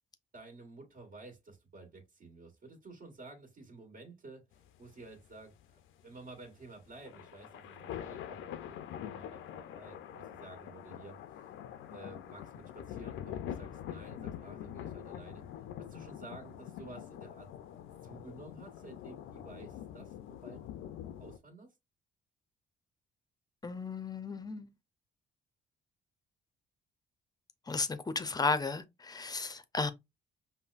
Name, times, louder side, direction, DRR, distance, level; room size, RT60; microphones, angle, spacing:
voice 1, 0.3-11.5 11.9-15.4 15.8-17.5 18.0-20.6 21.2-21.7, right 3 dB, 50° right, 1.5 m, -52 dB
sound 1, 4.5-21.4, left 10 dB, 85° left, 0.5 m, -45 dB
voice 2, 23.6-24.7 27.7-29.9, left 3 dB, 20° left, 0.6 m, -34 dB
5.4 x 2.1 x 2.4 m
cardioid pair, 90°, 20 cm